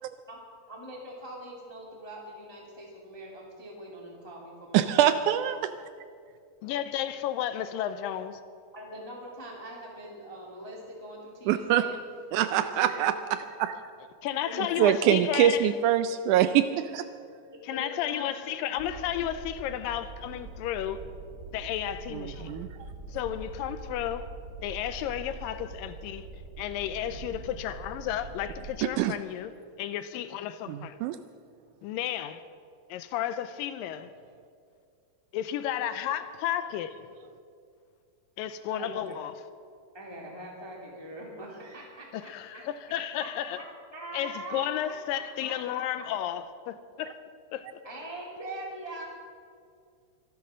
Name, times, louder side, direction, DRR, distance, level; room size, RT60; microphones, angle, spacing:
voice 1, 0.7-5.1 8.7-11.9 12.4-13.1 14.5-15.1 17.7-18.5 38.7-39.1 39.9-42.6 43.2-43.6 43.9-44.8 45.1-45.8 47.8-49.0, right 1 dB, 10° left, 1.7 m, -42 dB
voice 2, 4.7-5.7 11.5-11.8 12.3-13.1 14.8-17.1 22.1-22.7 29.0-29.1 30.7-31.2, right 11 dB, 85° right, 1.8 m, -24 dB
voice 3, 6.6-8.4 14.2-15.7 17.6-21.0 21.5-22.7 23.1-24.3 24.6-26.3 26.6-29.5 29.8-31.0 31.8-32.4 32.9-34.1 35.3-37.0 38.4-39.3 42.1-43.6 44.1-47.2 47.5-47.7, left 11 dB, 85° left, 2.2 m, -33 dB
sound 1, 18.8-28.8, right 2 dB, 40° right, 1.3 m, -43 dB
25.5 x 8.5 x 6.3 m
omnidirectional pair, 4.0 m